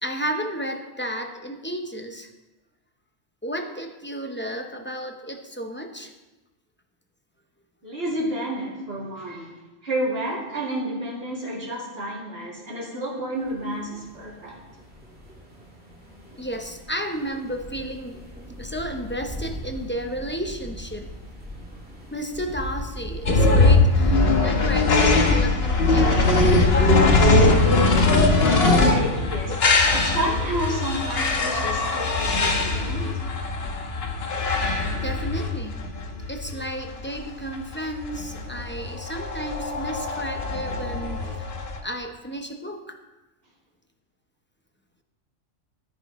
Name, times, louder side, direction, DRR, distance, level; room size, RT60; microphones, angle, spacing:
voice 1, 0.0-2.3 3.4-6.1 16.4-18.2 18.6-21.1 22.1-26.2 26.6-27.2 29.5-29.6 34.7-35.8 36.3-41.4 41.8-43.0, equal, 10° left, 4 dB, 0.6 m, -32 dB
voice 2, 7.8-9.5 9.8-14.6 28.7-29.5 29.9-33.0, right 1 dB, 50° right, -5 dB, 2.9 m, -30 dB
sound 1, 13.4-24.4, equal, 5° right, 2.2 m, -36 dB
sound 2, 23.3-41.8, left 2 dB, 55° left, 1.3 m, -21 dB
14.0 x 9.7 x 3.1 m, 1.1 s
omnidirectional pair, 1.3 m